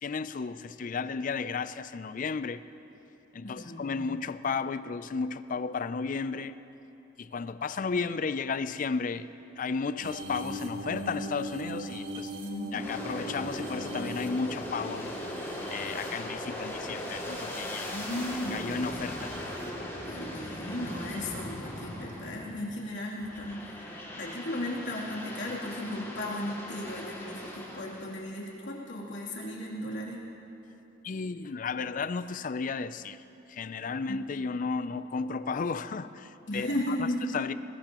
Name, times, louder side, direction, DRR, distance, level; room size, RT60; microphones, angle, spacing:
voice 1, 0.0-2.6 3.3-6.5 7.2-9.3 9.6-12.3 12.7-15.1 15.7-17.9 18.5-19.7 31.0-33.2 33.5-37.5, left 5 dB, 45° left, 13 dB, 0.4 m, -33 dB
voice 2, 3.4-3.9 12.4-12.8 17.6-18.8 20.0-30.2 34.1-34.2 36.5-37.2, left 1 dB, 70° left, -4 dB, 3.0 m, -36 dB
sound 1, 10.0-18.3 18.9-19.7 20.9-21.2 23.0-23.1, right 1 dB, 75° right, 1.7 m, -41 dB
Aircraft, 12.7-22.7 23.2-28.2, left 1 dB, 15° left, 2.4 m, -39 dB
21.5 x 20.5 x 3.0 m, 3.0 s
head